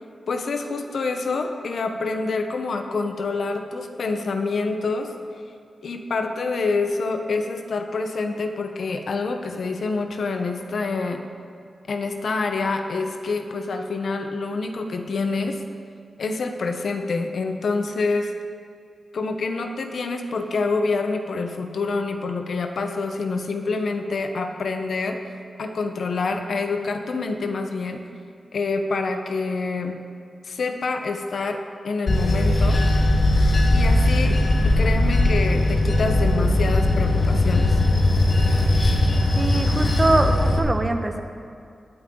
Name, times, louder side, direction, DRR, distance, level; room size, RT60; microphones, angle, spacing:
voice 1, 0.3-5.1 5.8-11.2 11.9-15.6 16.2-18.3 19.1-25.3 25.6-28.1 28.5-30.0 30.4-32.8 33.7-37.8, left 3 dB, 70° left, 5 dB, 1.0 m, -27 dB
Bell / Train, 32.1-40.6, left 1 dB, 55° left, 1.5 m, -19 dB
voice 2, 39.4-41.2, right 2 dB, 30° right, 6 dB, 1.0 m, -23 dB
19.0 x 8.8 x 3.9 m, 2.4 s
cardioid pair, 80°, 0 cm